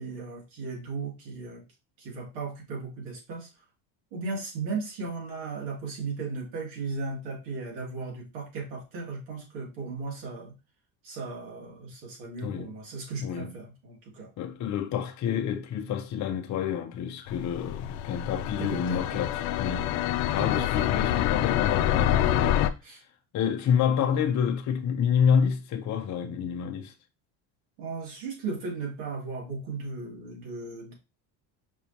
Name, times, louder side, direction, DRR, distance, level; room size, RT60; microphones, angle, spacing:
voice 1, 0.0-1.6 2.0-3.5 4.1-10.5 11.0-14.3 18.6-19.2 20.4-20.8 22.8-23.0 27.8-30.9, right 4 dB, 80° right, 2.7 m, -36 dB
voice 2, 12.4-12.8 13.2-13.6 14.4-20.0 20.3-22.5 23.3-26.9, left 7 dB, 40° left, 0.7 m, -28 dB
sound 1, 17.3-22.7, left 11 dB, 90° left, 0.6 m, -26 dB
5.3 x 3.4 x 2.8 m
cardioid pair, 120°, 45 cm